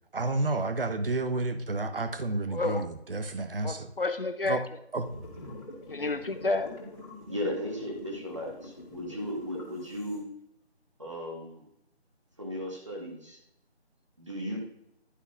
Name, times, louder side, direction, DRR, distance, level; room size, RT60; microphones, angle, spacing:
voice 1, 0.1-3.9 4.4-4.6 4.9-5.1, right 2 dB, 55° right, 10 dB, 0.7 m, -30 dB
voice 2, 2.5-2.9 3.6-4.8 5.9-6.9, left 3 dB, 55° left, 11 dB, 0.6 m, -31 dB
sound 1, 5.0-10.2, left 1 dB, 30° left, 2.0 m, -45 dB
voice 3, 7.3-10.2 11.0-11.6 12.4-13.4 14.2-14.6, equal, 25° right, -2 dB, 1.4 m, -36 dB
11.0 x 5.7 x 2.4 m, 0.80 s
figure-of-eight pair, 175°, 34 cm